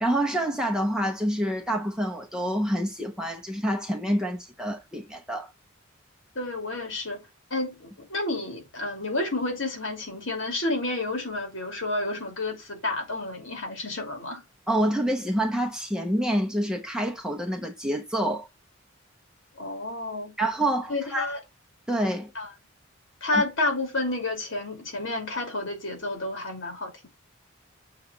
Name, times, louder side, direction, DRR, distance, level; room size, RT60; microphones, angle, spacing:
voice 1, 0.0-5.5 14.7-18.5 20.4-21.3 21.9-22.3 23.3-23.4, right 1 dB, 5° right, 1.0 m, -27 dB
voice 2, 6.3-7.2 7.5-14.4 19.5-20.3 20.9-21.4 22.3-22.5 23.2-27.1, left 2 dB, 65° left, 2.6 m, -30 dB
7.1 x 3.5 x 5.0 m
head